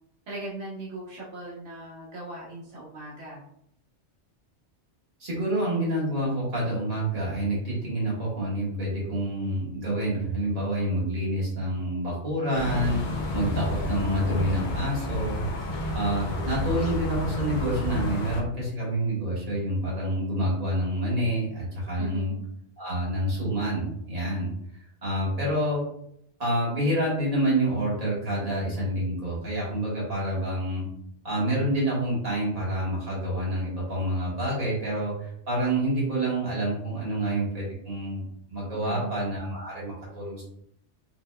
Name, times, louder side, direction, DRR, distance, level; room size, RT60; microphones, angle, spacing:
voice 1, 0.3-3.4 21.9-22.4 38.8-39.2, right 2 dB, 75° right, -6 dB, 1.2 m, -38 dB
voice 2, 5.2-22.4 22.8-24.5 25.0-25.8 26.4-30.9 31.2-40.4, right 1 dB, 35° right, -6 dB, 1.5 m, -28 dB
sound 1, 12.5-18.4, left 2 dB, 55° left, 0.6 m, -30 dB
4.2 x 2.9 x 2.2 m, 0.73 s
omnidirectional pair, 1.2 m